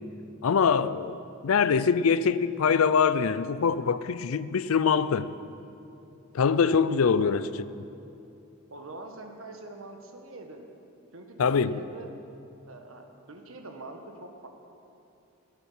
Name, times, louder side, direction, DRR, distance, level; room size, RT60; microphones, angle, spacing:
voice 1, 0.4-5.3 6.3-7.5 11.4-11.8, left 6 dB, 90° left, 0.5 m, -24 dB
voice 2, 8.7-10.6 11.1-12.1 12.6-14.5, right 2 dB, 75° right, 1.4 m, -44 dB
17.0 x 9.0 x 5.6 m
head